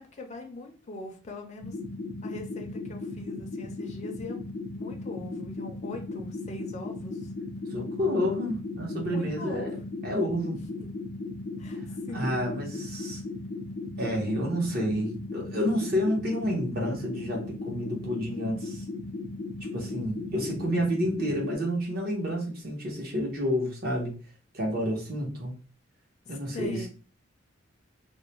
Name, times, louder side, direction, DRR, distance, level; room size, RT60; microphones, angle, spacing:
voice 1, 0.0-1.7 2.2-4.4 4.8-7.3 9.1-9.7 10.8-10.9 11.6-11.8 12.1-12.5 26.3-26.9, left 2 dB, 35° left, 2 dB, 0.5 m, -41 dB
sound 1, 1.6-21.5, left 3 dB, 75° left, 0.7 m, -37 dB
voice 2, 7.7-9.7 10.0-10.6 12.1-13.2 14.0-18.9 19.7-24.2 24.5-25.5 26.3-26.9, equal, 50° right, -1 dB, 1.0 m, -29 dB
2.4 x 2.1 x 2.9 m, 0.37 s
head